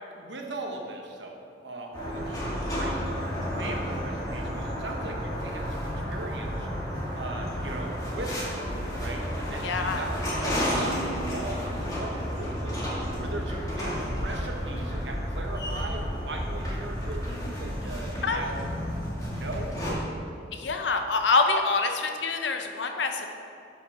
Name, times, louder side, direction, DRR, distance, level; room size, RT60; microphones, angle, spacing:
voice 1, 0.1-3.1 3.6-6.7 7.1-12.8 13.2-18.7 19.3-19.8, right 2 dB, 75° right, 2 dB, 1.1 m, -39 dB
sound 1, 1.9-19.9, equal, 20° left, 1.9 m, -31 dB
voice 2, 9.6-10.0 18.2-18.5 20.5-23.3, left 4 dB, 80° left, 5 dB, 0.8 m, -26 dB
11.5 x 5.3 x 4.1 m, 2.7 s
head